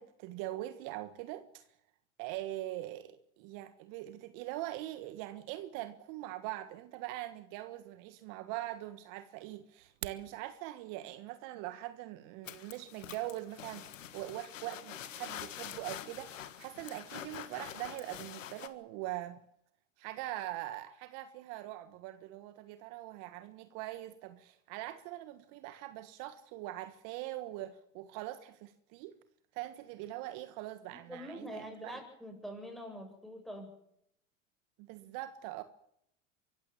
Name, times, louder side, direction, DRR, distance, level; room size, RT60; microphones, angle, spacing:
voice 1, 0.0-1.7 2.2-19.4 20.0-29.1 29.5-32.0 34.8-35.6, right 15 dB, 55° right, 1.6 m, -42 dB
sound 1, 9.8-10.3, right 13 dB, 85° right, 1.2 m, -43 dB
sound 2, 12.4-18.7, left 11 dB, 85° left, 1.7 m, -46 dB
voice 2, 31.1-33.7, equal, ahead, 7.9 m, -45 dB
24.0 x 15.0 x 7.3 m
hypercardioid pair, 95°, 37 cm